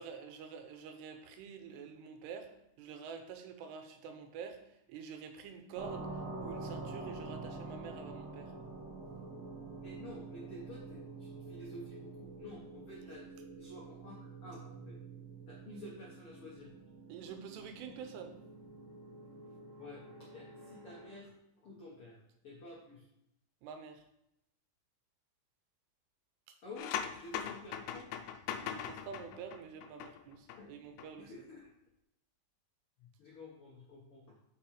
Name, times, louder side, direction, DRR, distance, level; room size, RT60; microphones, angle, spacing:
voice 1, 0.0-2.5 2.8-4.6 4.9-6.1 6.4-8.5 17.1-18.3 23.6-24.0 26.5-26.6 28.6-31.3, right 6 dB, 85° right, 6 dB, 2.9 m, -47 dB
sound 1, 5.7-21.2, right 3 dB, 50° right, 1.7 m, -47 dB
voice 2, 9.8-15.0 15.5-16.7 19.8-21.3 21.6-22.2 22.4-23.1 26.6-28.1 30.6-30.7 31.2-31.7 33.0-34.3, left 2 dB, 70° left, -5 dB, 1.3 m, -51 dB
sound 2, 26.8-30.6 30.9-31.1, left 9 dB, 85° left, 2.6 m, -40 dB
6.4 x 6.1 x 4.9 m, 0.80 s
omnidirectional pair, 4.7 m